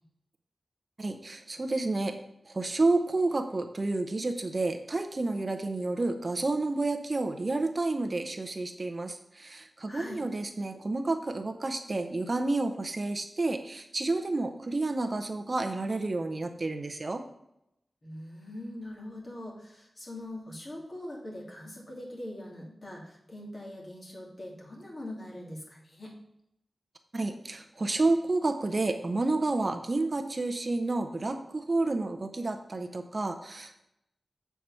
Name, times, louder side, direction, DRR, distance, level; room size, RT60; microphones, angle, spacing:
voice 1, 1.0-2.1 2.4-17.2 27.1-33.8, right 2 dB, 40° right, 6 dB, 0.6 m, -30 dB
voice 2, 9.9-10.2 18.0-26.1, left 1 dB, 40° left, -3 dB, 2.6 m, -42 dB
7.5 x 4.6 x 5.5 m, 0.82 s
wide cardioid pair, 100°, 0 cm